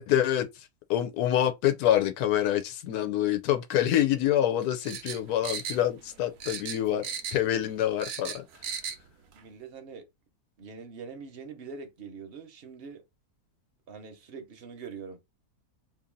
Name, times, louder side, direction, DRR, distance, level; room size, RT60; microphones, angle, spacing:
voice 1, 0.0-8.5, left 11 dB, 85° left, 1.1 m, -26 dB
sound 1, 4.8-6.1 6.4-7.5 7.8-9.0 9.3-9.4, right 7 dB, 80° right, 1.1 m, -36 dB
voice 2, 9.3-10.1 10.6-13.0 13.9-15.2, right 5 dB, 50° right, 0.9 m, -43 dB
2.8 x 2.6 x 3.8 m
omnidirectional pair, 1.6 m